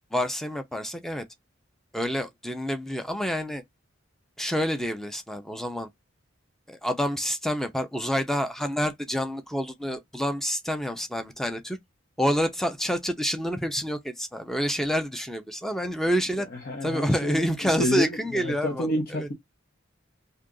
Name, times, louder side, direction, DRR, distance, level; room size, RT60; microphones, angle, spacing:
voice 1, 0.1-1.3 1.9-3.6 4.4-5.9 6.7-11.8 12.2-16.5 16.8-19.3, equal, ahead, 0.5 m, -28 dB
voice 2, 16.5-19.3, left 1 dB, 50° left, 0.7 m, -29 dB
2.7 x 2.4 x 3.7 m
head